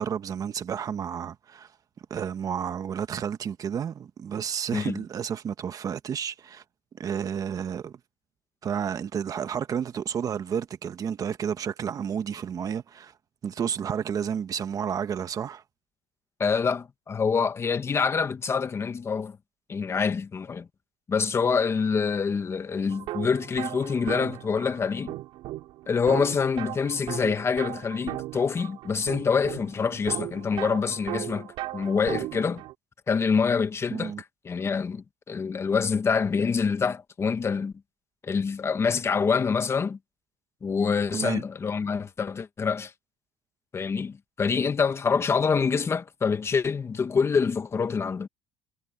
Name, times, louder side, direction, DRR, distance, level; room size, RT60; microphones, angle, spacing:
voice 1, 0.0-1.7 2.1-6.6 6.9-7.9 8.6-13.1 13.4-15.6 33.9-34.2 41.1-41.4, right 8 dB, 40° right, 1.6 m, -31 dB
voice 2, 16.4-19.4 19.7-20.7 21.1-25.2 25.9-31.5 31.7-32.6 33.1-34.1 34.4-37.7 38.2-40.0 40.6-42.9 43.7-48.3, left 5 dB, 30° left, 1.6 m, -26 dB
sound 1, 22.9-32.7, right 16 dB, 70° right, 3.6 m, -37 dB
cardioid pair, 105°, 9 cm